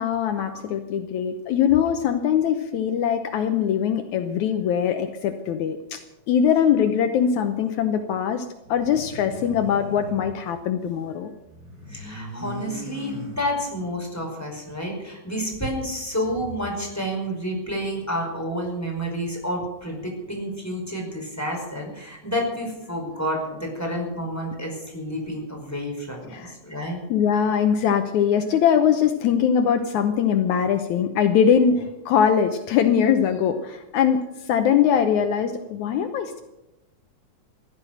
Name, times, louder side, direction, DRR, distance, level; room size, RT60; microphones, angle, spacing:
voice 1, 0.0-6.0 6.3-11.3 26.3-26.5 27.1-34.2 34.5-36.4, left 8 dB, 75° left, 7 dB, 2.2 m, -22 dB
sound 1, 8.7-11.1 11.4-13.9, equal, 35° right, 4.4 m, -40 dB
voice 2, 11.9-27.0, equal, 5° left, 0 dB, 4.8 m, -30 dB
15.5 x 12.5 x 6.6 m, 0.96 s
omnidirectional pair, 3.6 m